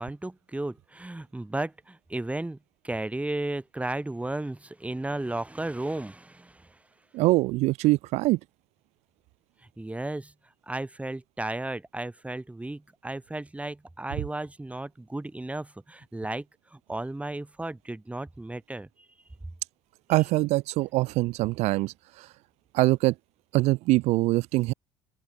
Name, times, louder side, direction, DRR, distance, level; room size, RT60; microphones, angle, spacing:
voice 1, 0.0-2.6 2.8-6.8 9.8-10.3 10.7-16.5 16.7-18.9, right 2 dB, 10° right, 4.9 m, -34 dB
voice 2, 7.1-8.4 20.1-22.3 22.7-23.1 23.5-24.7, right 20 dB, 60° right, 0.7 m, -23 dB
open air
hypercardioid pair, 60°, 13 cm